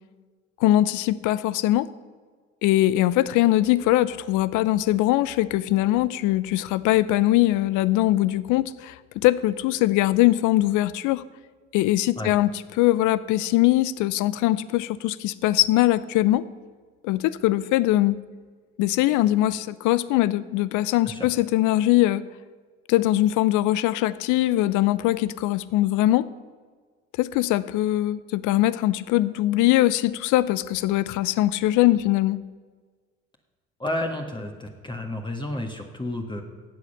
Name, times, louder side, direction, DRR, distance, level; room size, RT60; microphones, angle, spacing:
voice 1, 0.6-1.9 2.6-11.2 11.7-12.5 12.8-16.4 17.0-18.2 18.8-22.2 22.9-26.3 27.2-32.4, left 15 dB, 60° left, 17 dB, 0.7 m, -21 dB
voice 2, 33.8-36.4, left 1 dB, 15° left, 2 dB, 1.7 m, -31 dB
15.5 x 8.3 x 5.8 m, 1.5 s
hypercardioid pair, 60°, 34 cm